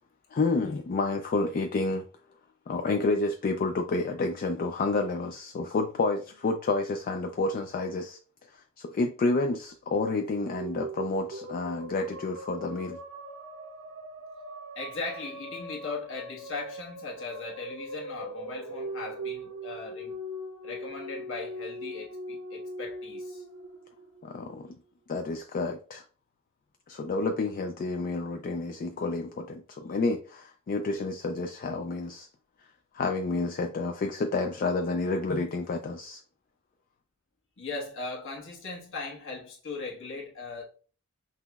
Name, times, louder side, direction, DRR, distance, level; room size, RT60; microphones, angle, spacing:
voice 1, 0.3-2.0 2.7-8.2 8.5-13.0 24.2-24.7 25.1-26.0 26.9-32.3 32.6-32.7 32.9-36.2, left 3 dB, 40° left, 0.3 m, -29 dB
sound 1, 10.1-24.6, right 1 dB, 80° right, 0.8 m, -40 dB
voice 2, 14.7-20.1 20.6-23.4 37.6-40.7, left 3 dB, 60° left, 1.3 m, -38 dB
5.7 x 2.9 x 2.3 m
head